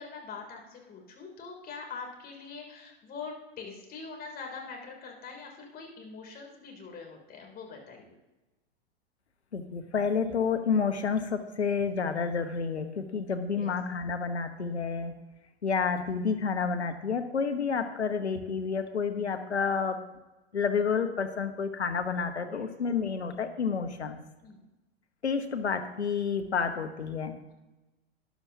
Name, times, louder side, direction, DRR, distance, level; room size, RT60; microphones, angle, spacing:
voice 1, 0.0-8.1 13.5-13.7 22.4-22.7 24.4-24.6 27.5-27.6, left 4 dB, 30° left, 1 dB, 3.1 m, -43 dB
voice 2, 9.5-15.1 15.6-20.0 20.5-24.2 25.2-27.3, left 5 dB, 90° left, 8 dB, 1.1 m, -30 dB
13.5 x 10.5 x 2.8 m, 1.1 s
hypercardioid pair, 105°, 32 cm